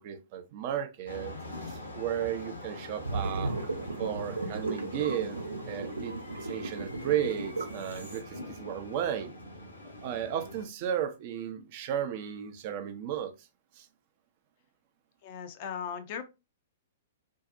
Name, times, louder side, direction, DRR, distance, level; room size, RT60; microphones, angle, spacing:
voice 1, 0.0-1.3 1.6-3.5 4.0-5.4 5.7-9.3 9.8-13.3 13.8-13.9, right 9 dB, 45° right, 0.4 m, -34 dB
sound 1, 1.1-10.7, left 2 dB, 80° left, 0.9 m, -44 dB
sound 2, 3.0-8.2, right 3 dB, 80° right, 0.7 m, -36 dB
voice 2, 15.2-16.2, left 7 dB, 45° left, 0.4 m, -37 dB
2.6 x 2.0 x 2.4 m
figure-of-eight pair, 110°, 0 cm